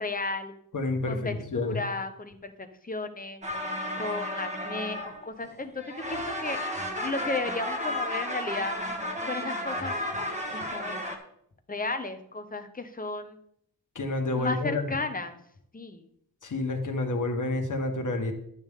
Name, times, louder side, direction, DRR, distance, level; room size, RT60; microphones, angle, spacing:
voice 1, 0.0-0.5 1.0-3.4 3.9-5.8 6.1-6.6 7.0-8.8 9.3-9.9 10.5-11.0 11.7-13.4 14.4-15.4 15.7-16.0, left 3 dB, 20° left, 7 dB, 0.9 m, -34 dB
voice 2, 0.7-1.8 13.9-14.9 16.4-18.3, left 2 dB, 50° left, 3 dB, 1.6 m, -29 dB
sound 1, 3.4-5.5 5.8-11.2, equal, 20° right, 1.4 m, -33 dB
11.5 x 8.3 x 3.7 m, 0.70 s
wide cardioid pair, 140°, 39 cm